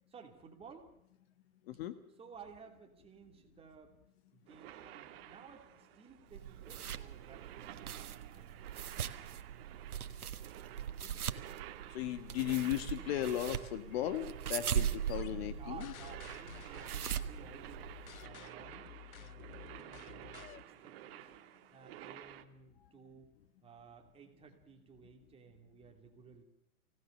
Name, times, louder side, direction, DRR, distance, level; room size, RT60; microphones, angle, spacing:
voice 1, 0.1-0.9 2.2-4.0 4.3-7.9 8.3-9.3 10.7-11.3 15.4-17.9 18.2-21.3 21.7-23.3 23.6-26.4, right 6 dB, 15° right, 3 dB, 2.9 m, -56 dB
sound 1, 4.5-22.4, right 13 dB, 40° right, 1.7 m, -52 dB
sound 2, 6.3-18.2, right 9 dB, 85° right, 1.5 m, -40 dB
voice 2, 11.9-15.9, left 13 dB, 45° left, 11 dB, 1.5 m, -36 dB
sound 3, 15.1-20.6, left 11 dB, 70° left, 1.1 m, -52 dB
25.0 x 17.5 x 6.7 m, 0.77 s
hypercardioid pair, 140°, 43 cm